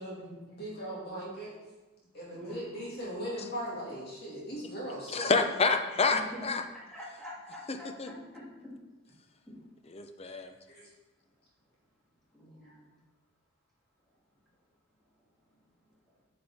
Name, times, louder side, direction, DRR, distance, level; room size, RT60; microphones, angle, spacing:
voice 1, 0.0-1.5 2.1-5.3 10.7-10.9, equal, 50° left, -5 dB, 2.5 m, -39 dB
voice 2, 5.1-6.6 7.7-8.1 9.9-10.5, left 4 dB, 30° left, 6 dB, 0.6 m, -28 dB
voice 3, 6.1-6.4 6.7-8.4 12.3-12.8, equal, ahead, -7 dB, 2.3 m, -45 dB
8.7 x 5.2 x 4.2 m, 1.1 s
head